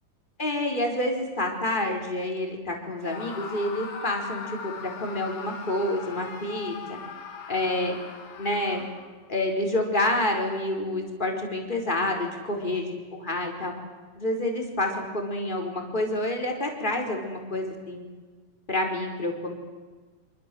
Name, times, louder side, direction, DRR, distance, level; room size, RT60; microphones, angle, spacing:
voice 1, 0.4-7.0 7.5-8.0 8.4-8.8 9.3-13.7 14.2-18.1 18.7-19.5, left 1 dB, 10° left, 2 dB, 4.7 m, -28 dB
Screaming, 3.0-9.3, left 5 dB, 50° left, 3.3 m, -40 dB
27.0 x 26.5 x 7.9 m, 1.4 s
omnidirectional pair, 4.3 m